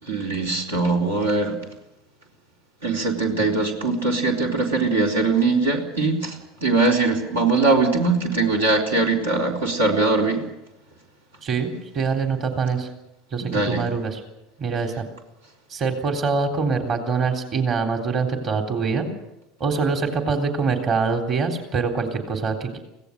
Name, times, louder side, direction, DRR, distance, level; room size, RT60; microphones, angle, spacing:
voice 1, 0.0-1.6 2.8-10.4 13.4-13.8, right 3 dB, 85° right, 0 dB, 3.8 m, -21 dB
voice 2, 11.4-12.9 13.3-14.2 14.6-15.0 15.7-19.1 19.6-22.8, right 5 dB, 45° right, 4 dB, 3.6 m, -24 dB
24.5 x 17.0 x 6.7 m, 0.91 s
hypercardioid pair, 75°, 0 cm